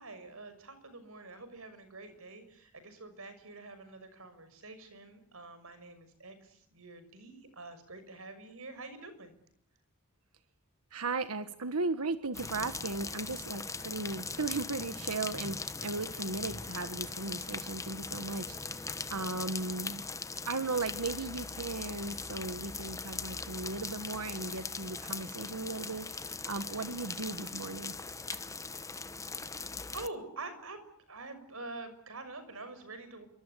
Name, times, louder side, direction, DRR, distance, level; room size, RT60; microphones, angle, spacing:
voice 1, 0.0-9.3 29.9-33.3, right 3 dB, 65° right, 11 dB, 6.3 m, -46 dB
voice 2, 10.9-20.1 20.4-28.0 28.3-28.5, right 3 dB, 85° right, 11 dB, 1.4 m, -37 dB
sound 1, 12.3-30.1, left 4 dB, 15° left, 1.0 m, -40 dB
27.5 x 24.0 x 8.5 m, 0.71 s
head